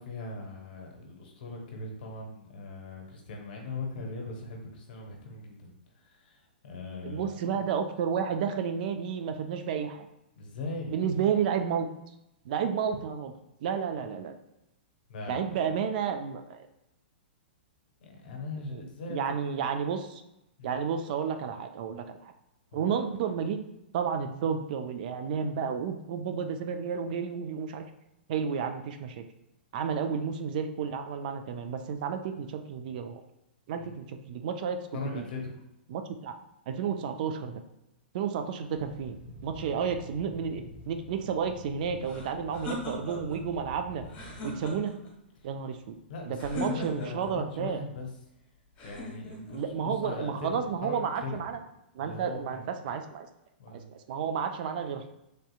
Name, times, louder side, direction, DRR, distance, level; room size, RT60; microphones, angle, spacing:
voice 1, 0.0-7.5 10.4-11.3 15.1-15.8 18.0-19.2 20.6-20.8 22.7-22.9 33.8-33.9 34.9-35.6 45.4-45.5 46.1-48.1 48.8-50.5 50.8-51.6 52.0-53.0 53.6-53.9, left 3 dB, 55° left, 1 dB, 0.8 m, -40 dB
voice 2, 7.0-10.1 10.9-11.9 12.4-13.3 13.6-14.3 15.3-16.7 18.7-18.8 19.1-20.2 20.6-22.3 22.7-23.6 23.9-27.8 28.3-29.2 29.7-33.2 33.7-34.8 35.1-35.3 35.9-36.4 36.7-37.6 38.1-39.2 39.4-44.0 44.4-44.9 45.4-46.0 46.3-47.8 49.5-51.6 52.0-53.3 53.7-55.1, right 7 dB, 50° right, 7 dB, 0.3 m, -31 dB
sound 1, 38.7-44.8, right 1 dB, 25° right, 0.9 m, -47 dB
sound 2, 42.0-43.4 44.0-45.1 46.4-47.3 48.8-49.6, left 1 dB, 30° left, 1.4 m, -39 dB
3.3 x 2.7 x 2.4 m, 0.86 s
figure-of-eight pair, 115°, 6 cm